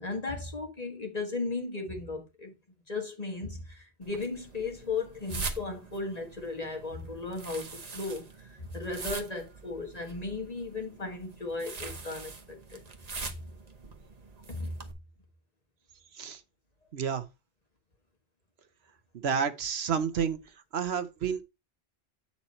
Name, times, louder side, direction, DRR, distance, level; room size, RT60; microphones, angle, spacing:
voice 1, 0.0-2.5 2.9-12.8 13.2-13.3 14.5-14.8, left 3 dB, 35° left, 1.7 m, -36 dB
sound 1, 4.0-14.9, right 4 dB, 40° right, 1.0 m, -43 dB
voice 2, 16.9-17.3 19.1-20.4 20.7-21.4, right 7 dB, 65° right, 1.0 m, -30 dB
8.2 x 4.3 x 4.1 m
omnidirectional pair, 1.2 m